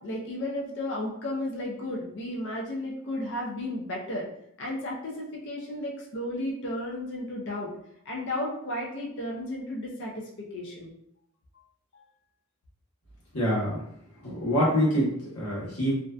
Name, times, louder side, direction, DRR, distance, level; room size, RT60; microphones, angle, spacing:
voice 1, 0.0-4.3 4.6-7.7 8.1-10.1 10.5-10.9 11.9-12.0, left 1 dB, 55° left, -2 dB, 0.5 m, -33 dB
voice 2, 13.3-13.8 14.2-15.9, equal, 85° left, -6 dB, 1.1 m, -25 dB
2.5 x 2.1 x 2.3 m, 0.75 s
head